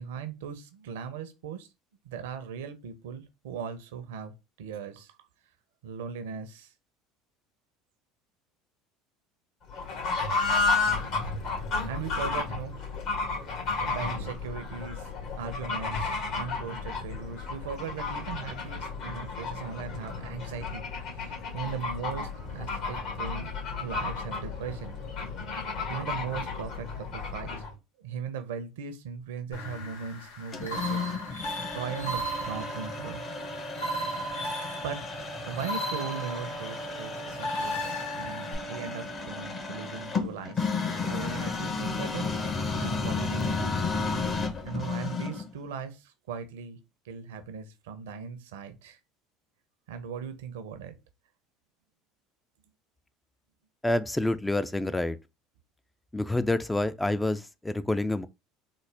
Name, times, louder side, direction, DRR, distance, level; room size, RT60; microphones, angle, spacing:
voice 1, 0.0-1.7 2.0-5.2 5.8-6.7 11.9-12.8 13.8-15.1 15.4-25.0 25.9-27.6 28.0-31.0 31.7-33.3 33.8-34.2 34.8-35.0 35.5-40.7 41.0-43.7 44.6-49.0 49.9-51.0, right 6 dB, 75° right, 0.6 m, -39 dB
Fowl / Bird, 9.7-27.7, left 4 dB, 60° left, 1.8 m, -32 dB
sound 1, 29.5-38.5, equal, 85° left, 1.2 m, -36 dB
sound 2, 30.5-45.5, left 4 dB, 35° left, 0.9 m, -33 dB
voice 2, 53.8-55.2 56.1-58.3, left 2 dB, 10° left, 0.3 m, -28 dB
3.9 x 2.1 x 3.3 m
hypercardioid pair, 70°, 0 cm